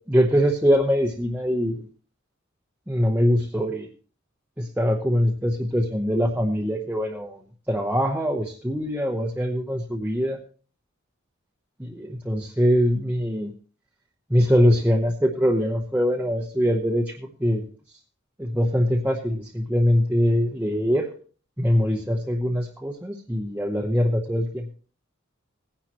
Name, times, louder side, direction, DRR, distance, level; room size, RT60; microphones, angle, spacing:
voice 1, 0.1-1.9 2.9-3.9 4.6-7.4 7.7-10.4 11.8-13.5 14.3-17.7 18.4-21.1 21.6-24.7, equal, 10° right, -1 dB, 0.9 m, -23 dB
17.5 x 10.5 x 3.0 m, 0.40 s
head